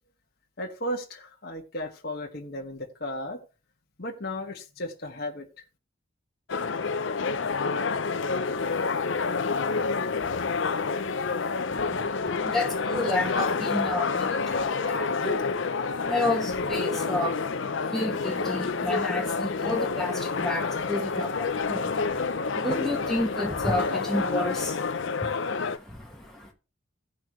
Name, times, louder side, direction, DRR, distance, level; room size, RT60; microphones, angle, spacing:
voice 1, 0.6-3.4 4.0-5.5, left 1 dB, 50° left, 1.7 m, -35 dB
sound 1, 6.5-25.8, left 4 dB, 70° left, 0.7 m, -28 dB
voice 2, 11.3-26.5, left 1 dB, ahead, 1.5 m, -32 dB
16.5 x 5.7 x 3.2 m
head